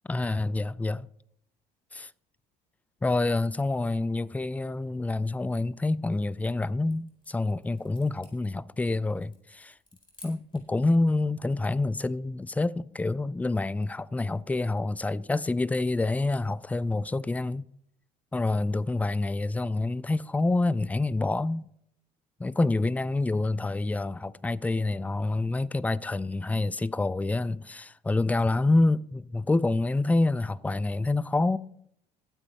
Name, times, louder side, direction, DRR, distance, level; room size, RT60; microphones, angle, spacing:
voice 1, 0.1-1.1 1.9-2.1 3.0-9.7 10.2-17.7 18.3-21.7 22.4-31.6, left 2 dB, 5° left, 0.4 m, -27 dB
sound 1, 6.3-10.8, left 2 dB, 25° left, 4.0 m, -57 dB
19.0 x 9.0 x 2.9 m
hypercardioid pair, 60°, 20 cm